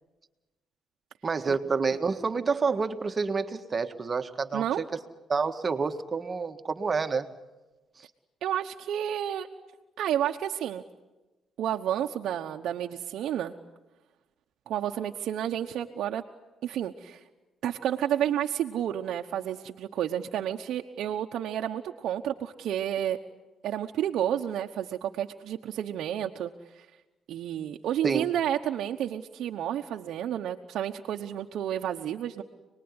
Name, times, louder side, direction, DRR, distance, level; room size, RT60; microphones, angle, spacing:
voice 1, 1.2-4.8 5.3-7.3 28.0-28.3, right 4 dB, 35° right, 8 dB, 1.7 m, -28 dB
voice 2, 4.5-4.8 8.4-9.5 10.0-10.8 11.6-13.5 14.7-16.2 16.6-17.2 17.6-23.2 23.6-26.9 27.3-32.4, right 10 dB, 75° right, 2 dB, 1.1 m, -30 dB
29.0 x 20.5 x 9.8 m, 1.1 s
cardioid pair, 90°, 0 cm